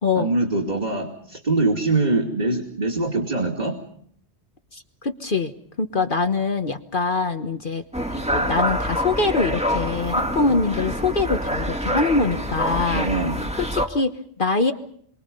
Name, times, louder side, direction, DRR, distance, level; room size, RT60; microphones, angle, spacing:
voice 1, 0.2-3.8 12.9-13.3, right 2 dB, 40° right, 1 dB, 2.8 m, -23 dB
voice 2, 4.7-5.5 5.8-7.8 8.1-13.1 13.7-14.7, left 3 dB, 50° left, 7 dB, 1.4 m, -23 dB
sound 1, 7.9-13.9, equal, 5° right, 1.9 m, -26 dB
29.0 x 23.5 x 5.5 m, 0.63 s
omnidirectional pair, 1.1 m